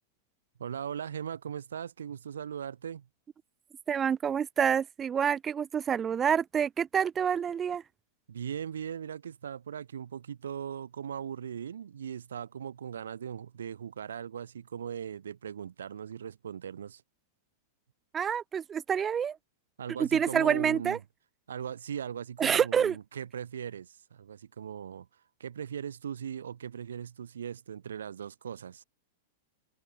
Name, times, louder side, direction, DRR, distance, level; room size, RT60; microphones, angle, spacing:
voice 1, 0.6-3.1 8.3-17.0 19.8-21.0 21.5-25.1 25.4-28.8, right 8 dB, 75° right, 5.0 m, -39 dB
voice 2, 3.9-7.8 18.1-19.4 20.0-21.0 22.4-23.0, right 7 dB, 25° right, 1.2 m, -27 dB
figure-of-eight pair, 100°, 0 cm